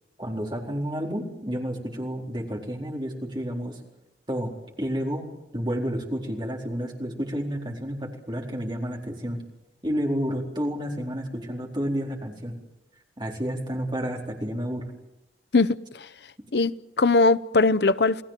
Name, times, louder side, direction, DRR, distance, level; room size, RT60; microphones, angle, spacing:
voice 1, 0.2-3.8 4.3-9.4 9.8-12.5 13.2-14.9, equal, 25° right, 4.3 m, -30 dB
voice 2, 15.5-16.1 16.5-18.2, left 3 dB, 70° left, 0.8 m, -21 dB
29.5 x 19.0 x 7.6 m
head